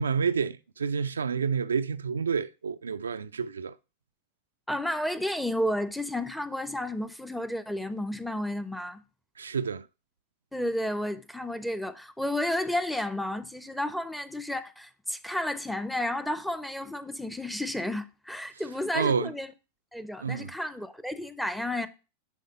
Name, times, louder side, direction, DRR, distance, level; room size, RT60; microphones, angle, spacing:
voice 1, 0.0-3.8 9.4-9.9 18.9-19.3 20.2-20.5, right 6 dB, 70° right, 0.3 m, -29 dB
voice 2, 4.7-9.0 10.5-19.5 19.9-21.9, left 1 dB, ahead, 0.6 m, -32 dB
10.0 x 3.5 x 5.4 m
figure-of-eight pair, 90°, 0 cm